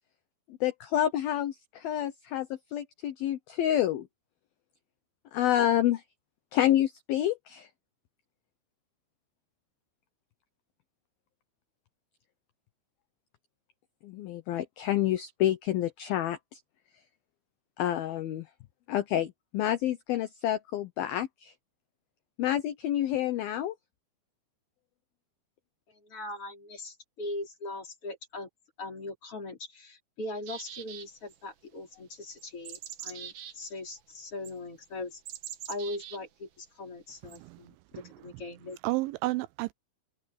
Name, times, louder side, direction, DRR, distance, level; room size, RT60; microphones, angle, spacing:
voice 1, 0.5-4.1 5.3-6.0 6.5-7.7 14.0-16.6 17.8-18.5 18.9-21.5 22.4-23.8, left 12 dB, 75° left, 2.2 m, -28 dB
voice 2, 25.9-28.5 28.8-35.2 35.7-38.8, left 2 dB, 30° left, 4.8 m, -40 dB
sound 1, 30.4-31.4 32.4-33.5 34.4-34.5 35.2-36.2 37.3-37.4, right 10 dB, 60° right, 2.5 m, -43 dB
voice 3, 37.2-37.6 37.9-38.3 38.8-39.7, right 21 dB, 85° right, 2.8 m, -32 dB
omnidirectional pair, 5.6 m